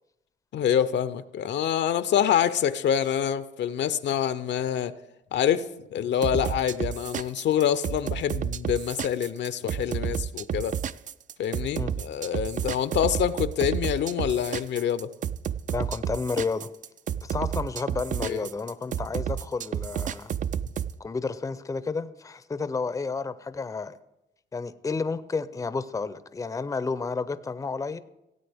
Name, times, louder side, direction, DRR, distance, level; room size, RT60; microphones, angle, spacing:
voice 1, 0.5-4.9 5.3-5.7 5.9-10.8 11.4-15.1 18.2-18.4, left 9 dB, 65° left, 14 dB, 0.6 m, -26 dB
sound 1, 6.2-20.9, right 9 dB, 40° right, 0.4 m, -30 dB
voice 2, 15.7-16.7 17.2-20.3 21.0-24.0 24.5-28.0, left 4 dB, 15° left, 13 dB, 0.5 m, -31 dB
17.5 x 8.4 x 3.5 m, 0.90 s
cardioid pair, 90°, 20 cm